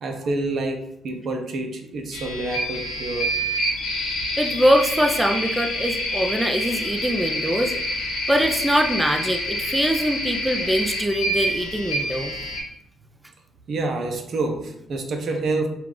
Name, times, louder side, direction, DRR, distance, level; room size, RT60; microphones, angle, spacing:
voice 1, 0.0-3.3 13.7-15.7, right 2 dB, 65° right, 4 dB, 0.7 m, -27 dB
sound 1, 2.1-12.6, equal, 85° left, 1.1 m, -27 dB
voice 2, 4.4-7.7 8.3-12.3, equal, 10° right, 3 dB, 0.5 m, -22 dB
4.6 x 2.4 x 3.7 m, 0.79 s
supercardioid pair, 70°, 0 cm